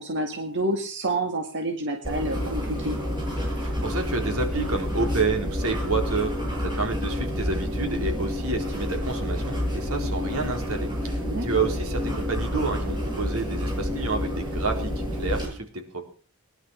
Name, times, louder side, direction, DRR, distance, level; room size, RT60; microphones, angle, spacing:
voice 1, 0.0-3.0 11.3-11.4, right 1 dB, 55° right, 3 dB, 2.1 m, -28 dB
sound 1, 2.0-15.5, left 1 dB, 20° right, 7.7 m, -29 dB
voice 2, 3.6-6.3 6.6-11.1 11.4-15.7 15.9-16.0, right 3 dB, 80° right, 3 dB, 4.1 m, -29 dB
20.0 x 11.5 x 6.3 m, 0.41 s
head